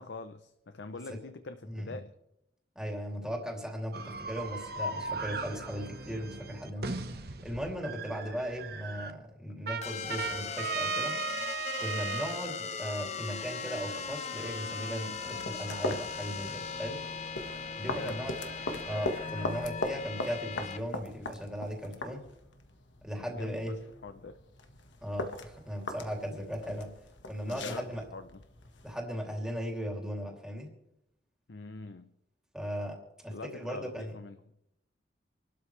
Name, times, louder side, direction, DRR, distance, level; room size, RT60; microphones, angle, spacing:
voice 1, 0.0-2.1 17.8-18.2 23.2-24.4 27.4-28.4 31.5-32.1 33.3-34.4, left 3 dB, 75° left, 9 dB, 0.7 m, -44 dB
voice 2, 1.6-2.0 2.7-11.1 11.8-17.0 17.7-18.4 18.8-22.2 23.0-23.8 25.0-26.9 27.3-28.1 28.8-30.7 32.5-34.1, equal, 5° right, 0 dB, 2.9 m, -37 dB
sound 1, 3.9-9.1 9.7-12.4 13.9-19.7, right 4 dB, 60° right, 1.1 m, -39 dB
sound 2, 9.8-20.8, left 5 dB, 40° left, 0.8 m, -39 dB
sound 3, 15.1-29.0, left 2 dB, 90° left, 1.5 m, -40 dB
27.0 x 12.5 x 3.3 m, 0.84 s
head